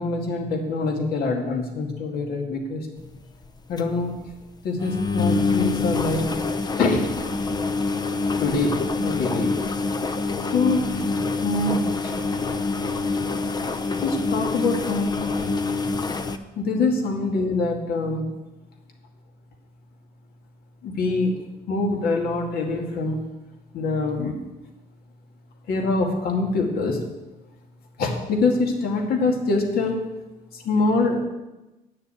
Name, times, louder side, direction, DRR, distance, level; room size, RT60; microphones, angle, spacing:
voice 1, 0.0-2.8 3.7-4.1 4.6-6.3 6.8-7.0 8.4-9.5 10.5-11.1 11.4-12.1 14.0-15.1 16.6-18.2 20.8-21.3 21.7-23.2 23.7-24.4 25.7-27.0 28.0-30.0 30.5-31.2, left 3 dB, 65° left, 2 dB, 2.2 m, -24 dB
sound 1, 3.0-3.2 3.4-3.5 3.8-3.9 4.2-4.3 4.8-16.4, left 3 dB, 25° left, 0.7 m, -26 dB
8.6 x 6.6 x 8.5 m, 1.0 s
cardioid pair, 110°, 17 cm